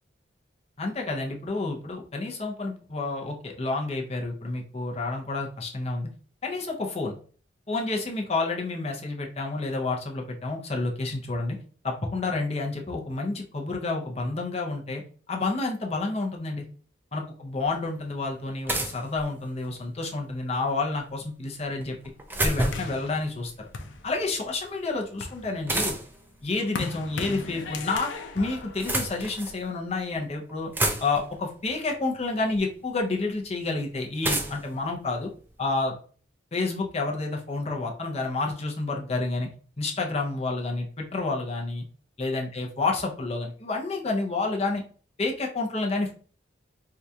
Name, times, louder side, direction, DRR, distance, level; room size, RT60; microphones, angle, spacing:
voice 1, 0.8-6.1 6.4-7.2 7.7-11.6 11.8-15.0 15.3-16.6 17.1-22.0 22.4-23.7 24.0-26.0 26.4-28.1 28.3-30.7 31.0-35.3 35.6-36.0 36.5-39.5 39.8-41.8 42.2-44.8 45.2-46.1, left 3 dB, 35° left, 0 dB, 0.6 m, -29 dB
sound 1, 17.6-17.7 18.7-19.8 21.8-23.0 25.7-26.3 27.4-28.0 28.6-29.6 30.2-30.3 30.5-31.4 32.5-32.6 34.2-35.8, right 1 dB, 10° right, 0.4 m, -30 dB
sound 2, 22.7-24.5 25.0-29.6, left 4 dB, 80° left, 0.6 m, -38 dB
4.6 x 2.3 x 2.7 m, 0.41 s
head